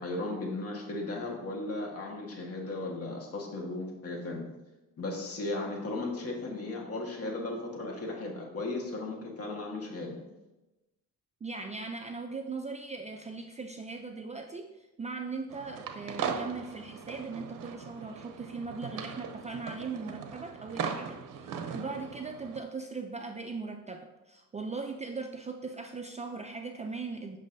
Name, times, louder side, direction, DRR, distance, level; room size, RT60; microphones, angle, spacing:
voice 1, 0.0-4.4 5.0-10.4, left 2 dB, 45° left, 0 dB, 1.5 m, -36 dB
voice 2, 11.4-27.4, right 4 dB, 20° right, 4 dB, 0.4 m, -39 dB
sound 1, 15.5-22.6, right 6 dB, 75° right, 0.7 m, -39 dB
7.4 x 6.0 x 2.6 m, 1.0 s
cardioid pair, 125°, 32 cm